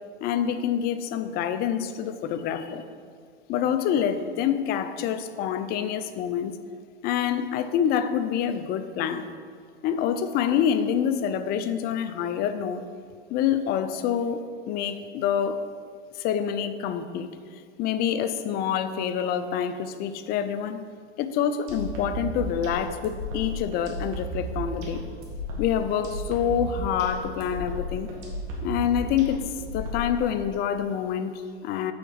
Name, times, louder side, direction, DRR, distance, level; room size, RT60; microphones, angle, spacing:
voice 1, 0.2-2.8 3.5-6.5 7.0-9.3 9.8-12.8 13.3-15.7 16.2-17.3 17.8-20.8 21.2-25.0 25.6-28.1 28.6-29.4 29.7-31.9, left 8 dB, 30° left, 10 dB, 0.4 m, -27 dB
sound 1, 21.7-30.3, equal, 50° right, 2.1 m, -33 dB
7.0 x 4.6 x 6.2 m, 2.1 s
supercardioid pair, 125°, 33 cm